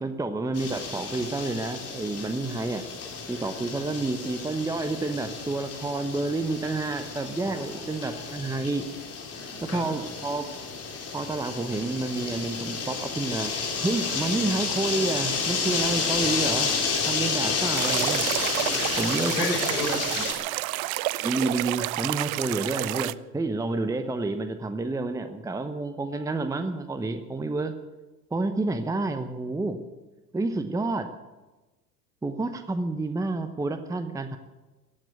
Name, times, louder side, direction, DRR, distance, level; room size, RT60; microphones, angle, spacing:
voice 1, 0.0-2.8 3.3-8.9 9.7-10.5 11.1-13.5 13.8-16.7 17.1-18.3 19.0-19.6 21.2-27.8 28.3-29.8 30.3-31.1 32.2-34.4, right 2 dB, 5° right, 9 dB, 0.9 m, -29 dB
sound 1, 0.5-20.3, left 5 dB, 30° left, 4.0 m, -31 dB
voice 2, 7.4-8.4 9.3-10.0 18.6-20.4, left 3 dB, 80° left, 2 dB, 5.4 m, -36 dB
sound 2, 17.7-23.1, right 18 dB, 65° right, 0.6 m, -30 dB
15.0 x 9.1 x 9.3 m, 1.2 s
hypercardioid pair, 85°, 47 cm